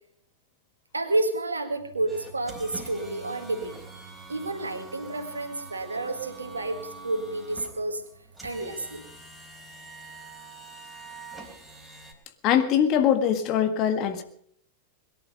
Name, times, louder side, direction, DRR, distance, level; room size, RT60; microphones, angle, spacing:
voice 1, 0.9-3.8 4.3-8.0 8.4-9.0, right 2 dB, 75° right, 5 dB, 1.9 m, -30 dB
sound 1, 2.1-12.1, right 2 dB, 5° right, 3.9 m, -46 dB
voice 2, 12.4-14.2, left 9 dB, 40° left, 8 dB, 1.7 m, -22 dB
22.0 x 11.0 x 5.2 m, 0.65 s
figure-of-eight pair, 90°, 0 cm